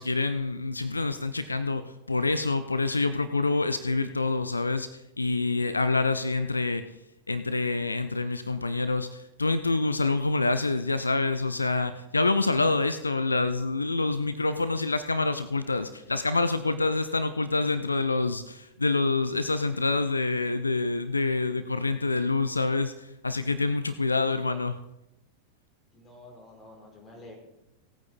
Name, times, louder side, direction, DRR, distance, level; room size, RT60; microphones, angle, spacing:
voice 1, 0.0-6.8 7.3-24.8, left 3 dB, 80° left, 12 dB, 0.6 m, -27 dB
voice 2, 25.9-27.4, left 1 dB, 20° left, 0 dB, 4.6 m, -49 dB
18.0 x 8.9 x 4.3 m, 0.90 s
figure-of-eight pair, 90°, 0 cm